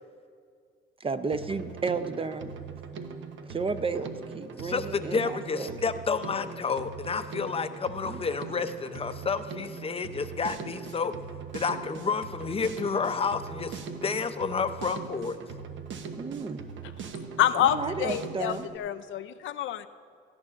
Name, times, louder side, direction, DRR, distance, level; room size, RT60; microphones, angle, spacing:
voice 1, 1.0-2.5 3.4-5.8 8.0-8.2 16.1-16.6 17.6-18.7, right 4 dB, 25° right, 10 dB, 0.6 m, -33 dB
Drum kit, 1.3-18.8, right 5 dB, 70° right, 1.0 m, -41 dB
voice 2, 4.6-11.2 11.5-15.4, left 5 dB, 30° left, 10 dB, 0.6 m, -30 dB
voice 3, 17.4-19.9, left 11 dB, 75° left, 12 dB, 0.5 m, -27 dB
17.5 x 14.0 x 2.5 m, 2.2 s
cardioid pair, 90°, 20 cm